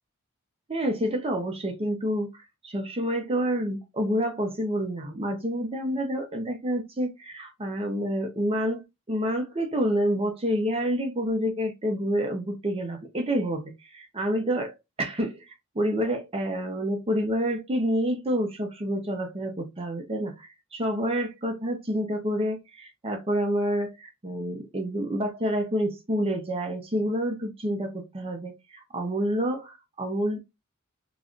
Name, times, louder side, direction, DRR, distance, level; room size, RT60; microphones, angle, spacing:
voice 1, 0.7-2.3 2.6-30.4, equal, 25° right, 0.6 m, -28 dB
3.1 x 2.4 x 2.4 m
head